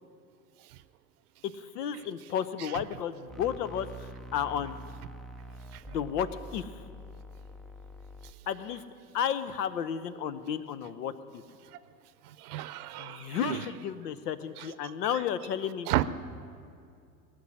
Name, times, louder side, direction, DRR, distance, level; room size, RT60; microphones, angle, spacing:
voice 1, 1.4-3.9 4.3-4.8 5.9-6.7 8.5-8.8 9.1-11.4 13.0-15.9, left 9 dB, 75° left, 14 dB, 0.9 m, -32 dB
sound 1, 3.3-8.3, equal, ahead, 0.4 m, -45 dB
voice 2, 12.2-13.7 14.6-15.2 15.9-16.0, right 15 dB, 65° right, 15 dB, 0.7 m, -34 dB
19.0 x 6.4 x 9.9 m, 2.4 s
hypercardioid pair, 85°, 49 cm